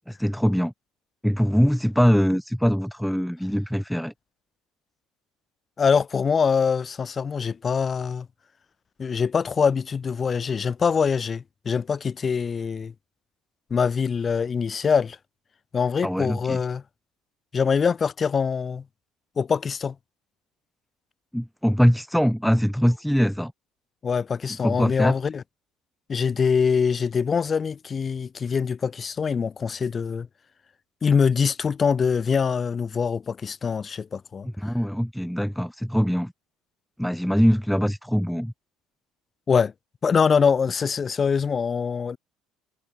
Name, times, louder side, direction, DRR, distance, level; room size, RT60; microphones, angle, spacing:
voice 1, 0.1-0.7 1.2-4.1 16.0-16.6 21.3-23.5 24.6-25.1 34.6-36.3 37.0-38.5, equal, ahead, 1.4 m, -22 dB
voice 2, 5.8-8.3 9.0-12.9 13.7-15.2 15.7-16.8 17.5-18.8 19.4-19.9 24.0-25.4 26.1-30.3 31.0-34.5 39.5-39.7 40.0-42.2, left 6 dB, 35° left, 1.4 m, -24 dB
hypercardioid pair, 75°, 0 cm